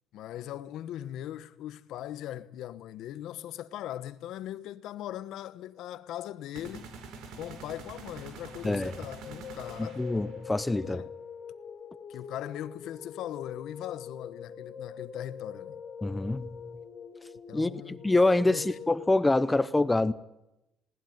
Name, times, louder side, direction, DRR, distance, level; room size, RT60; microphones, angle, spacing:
voice 1, 0.1-6.9 7.3-10.0 10.8-11.1 12.1-15.8 17.5-18.0 18.4-18.8, left 12 dB, 75° left, 1.2 m, -40 dB
sound 1, 6.6-10.5, right 4 dB, 90° right, 4.2 m, -46 dB
sound 2, 8.8-19.1, left 6 dB, 40° left, 2.8 m, -44 dB
voice 2, 9.8-11.0 16.0-16.5 17.5-20.1, left 2 dB, 10° left, 0.7 m, -26 dB
20.5 x 18.5 x 9.4 m
cardioid pair, 165°, 0 cm